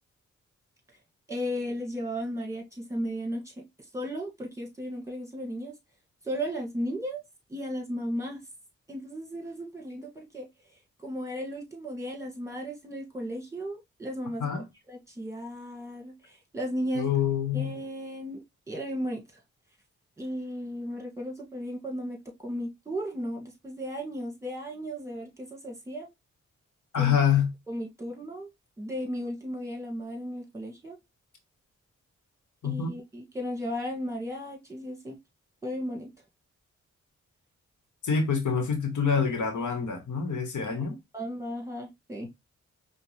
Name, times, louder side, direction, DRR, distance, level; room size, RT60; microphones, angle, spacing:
voice 1, 1.3-3.6 3.9-5.7 6.2-7.2 7.5-8.4 8.9-10.5 11.0-14.5 14.9-17.1 17.5-18.4 18.7-19.2 20.2-26.1 27.0-27.2 27.7-28.5 28.8-31.0 32.6-35.2 35.6-36.1 40.6-40.8 41.1-42.3, equal, 10° right, 1.7 m, -35 dB
voice 2, 16.9-17.7 26.9-27.5 32.6-32.9 38.0-41.0, left 7 dB, 75° left, 1.0 m, -26 dB
5.1 x 2.1 x 3.1 m
supercardioid pair, 40°, 30 cm